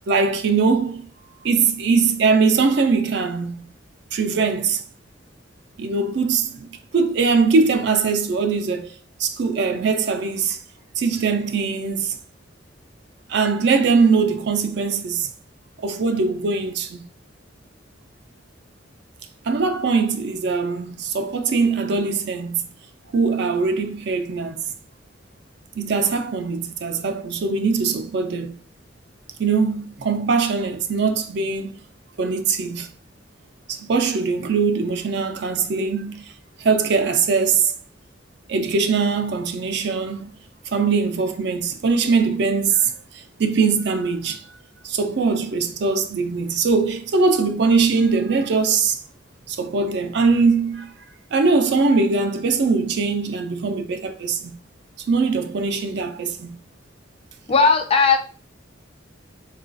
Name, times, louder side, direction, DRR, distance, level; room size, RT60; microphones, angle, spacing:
voice 1, 0.1-1.1 1.4-3.7 4.1-4.8 5.8-6.7 6.9-10.6 11.0-12.2 13.3-15.3 15.8-17.0 19.4-22.7 23.1-24.7 25.8-28.6 29.4-31.8 32.2-32.9 33.7-36.3 36.6-37.7 38.5-40.3 40.7-44.4 44.8-49.0 49.5-50.9 51.3-54.6 55.1-56.6, right 4 dB, 60° right, 0.4 m, -21 dB
voice 2, 57.5-58.2, left 4 dB, 30° left, 0.4 m, -16 dB
3.8 x 2.3 x 2.5 m
head